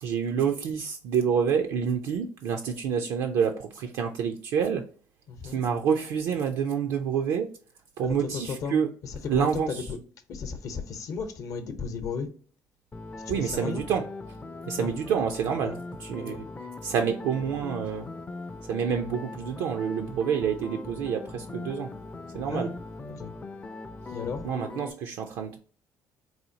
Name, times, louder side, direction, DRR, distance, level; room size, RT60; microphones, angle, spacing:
voice 1, 0.0-4.8 5.4-7.5 8.0-8.9 9.2-9.9 13.3-14.1 14.7-16.4 16.8-18.1 18.6-21.9 22.3-22.8 24.4-25.6, right 7 dB, 75° right, 0.4 m, -28 dB
voice 2, 5.3-5.6 8.0-8.8 9.0-10.0 10.3-12.3 13.2-13.8 14.8-14.9 15.6-15.8 16.2-16.4 22.5-22.7 23.1-23.3 24.1-24.5, left 5 dB, 55° left, 0.8 m, -35 dB
sound 1, 12.9-24.9, left 3 dB, 20° left, 0.4 m, -40 dB
4.1 x 2.4 x 2.7 m
supercardioid pair, 90°, 7 cm